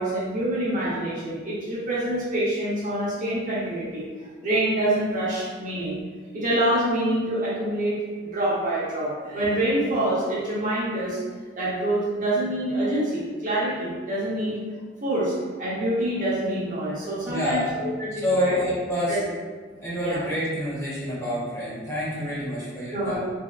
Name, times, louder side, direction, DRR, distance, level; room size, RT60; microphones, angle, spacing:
voice 1, 0.0-4.0 4.4-6.0 6.3-8.0 8.3-11.2 11.6-14.6 15.0-18.6 19.1-19.3 20.0-20.2 22.9-23.2, right 1 dB, 45° right, -7 dB, 0.8 m, -26 dB
voice 2, 17.3-17.7 18.1-19.2 19.7-23.2, equal, 15° left, -9 dB, 1.1 m, -27 dB
3.3 x 2.7 x 2.3 m, 1.5 s
head